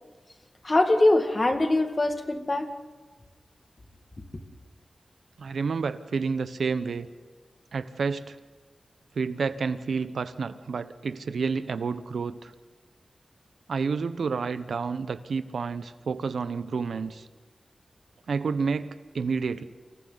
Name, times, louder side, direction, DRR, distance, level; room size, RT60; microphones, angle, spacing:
voice 1, 0.6-2.7, left 2 dB, 30° left, 5 dB, 2.1 m, -22 dB
voice 2, 5.4-7.1 7.7-8.4 9.2-12.5 13.7-17.3 18.3-19.6, right 5 dB, 85° right, 12 dB, 0.9 m, -29 dB
29.5 x 25.0 x 4.1 m, 1.4 s
wide cardioid pair, 110°, 0 cm